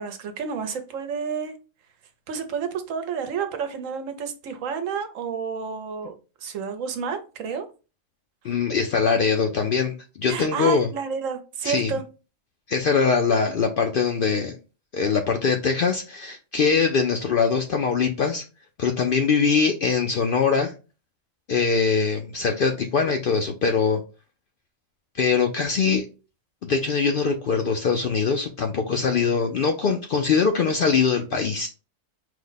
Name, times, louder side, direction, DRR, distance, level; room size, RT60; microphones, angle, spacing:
voice 1, 0.0-1.6 2.3-6.2 6.4-7.7 10.3-12.0, right 6 dB, 75° right, 1.1 m, -30 dB
voice 2, 8.4-10.9 11.6-11.9 12.7-14.6 14.9-18.4 18.8-20.7 21.5-24.0 25.1-26.0 26.6-31.7, left 5 dB, 60° left, 0.6 m, -22 dB
4.8 x 2.1 x 3.9 m
omnidirectional pair, 1.4 m